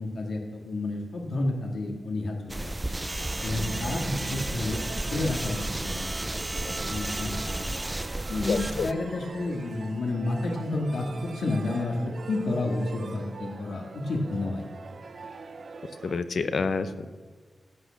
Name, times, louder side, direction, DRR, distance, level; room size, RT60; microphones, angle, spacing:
voice 1, 0.0-2.7 3.4-7.8 8.3-14.7, left 2 dB, 70° left, 1 dB, 1.9 m, -31 dB
sound 1, 2.5-8.9, right 1 dB, 10° right, 0.3 m, -32 dB
sound 2, 3.2-16.2, right 4 dB, 50° right, 0.7 m, -42 dB
voice 2, 8.5-8.9 16.0-17.1, left 4 dB, 55° left, 11 dB, 0.7 m, -28 dB
14.5 x 8.6 x 6.3 m, 1.4 s
wide cardioid pair, 180°, 0 cm